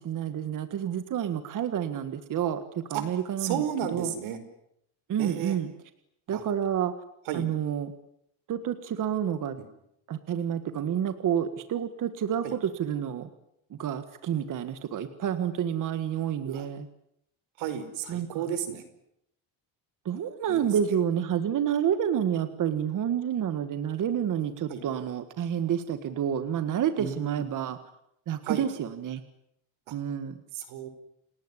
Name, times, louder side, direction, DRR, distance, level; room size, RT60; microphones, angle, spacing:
voice 1, 0.0-3.6 3.9-4.1 5.1-5.7 6.3-6.9 7.3-7.9 8.5-9.6 10.1-13.3 13.8-16.9 18.1-18.5 20.1-27.8 28.3-29.2 29.9-30.4, right 9 dB, 40° right, 11 dB, 1.7 m, -29 dB
voice 2, 3.4-4.4 5.2-5.5 6.3-6.4 7.3-7.5 12.4-12.5 16.4-16.7 17.6-18.8 20.5-20.7 24.7-24.8 27.0-27.4 28.4-28.6 30.5-30.9, right 9 dB, 85° right, 11 dB, 5.0 m, -32 dB
29.5 x 18.5 x 9.9 m, 0.77 s
cardioid pair, 175°, 46 cm